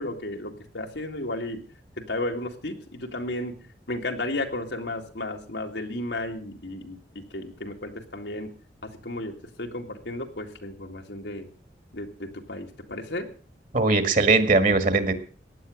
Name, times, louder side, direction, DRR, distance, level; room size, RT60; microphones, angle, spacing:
voice 1, 0.0-1.6 2.0-3.6 3.9-7.0 7.3-8.5 8.8-11.5 11.9-13.3, left 1 dB, 80° left, 3 dB, 2.2 m, -33 dB
voice 2, 13.7-15.1, right 3 dB, 45° right, 10 dB, 1.8 m, -20 dB
15.5 x 9.8 x 6.4 m, 0.40 s
head